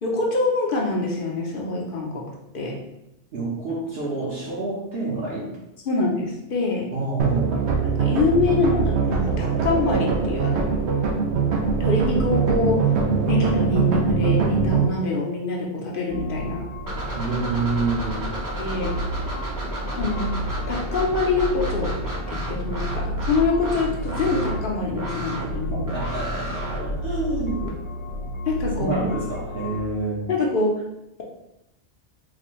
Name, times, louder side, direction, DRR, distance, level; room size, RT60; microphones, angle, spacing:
voice 1, 0.0-2.8 5.9-6.9 8.0-10.7 11.8-12.8 13.2-16.7 18.6-18.9 20.0-20.3 20.7-21.9 22.3-25.7 28.5-29.0 30.3-30.7, left 3 dB, 55° left, -2 dB, 0.8 m, -25 dB
voice 2, 3.3-5.5 6.9-7.4 17.2-18.2 25.7-27.6 28.8-30.2, right 3 dB, 65° right, -7 dB, 1.1 m, -28 dB
sound 1, 7.2-14.9, right 5 dB, 80° right, 0.9 m, -22 dB
sound 2, 16.1-29.8, equal, 85° left, 1.0 m, -33 dB
sound 3, 16.9-27.7, right 1 dB, 25° right, 0.6 m, -31 dB
4.0 x 2.5 x 3.0 m, 0.88 s
omnidirectional pair, 1.1 m